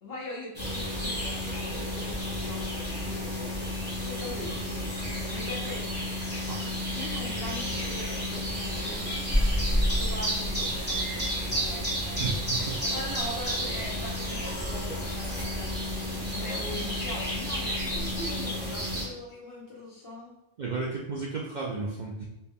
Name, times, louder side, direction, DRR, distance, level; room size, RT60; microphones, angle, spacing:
voice 1, 0.0-6.0 6.9-9.3 10.0-12.4 12.8-20.4, left 1 dB, 55° left, -5 dB, 1.3 m, -42 dB
sound 1, 0.5-19.0, equal, 10° right, 1.0 m, -31 dB
voice 2, 12.2-12.7 20.6-22.2, right 4 dB, 55° right, -3 dB, 0.5 m, -33 dB
4.3 x 2.2 x 3.5 m, 0.92 s
omnidirectional pair, 1.2 m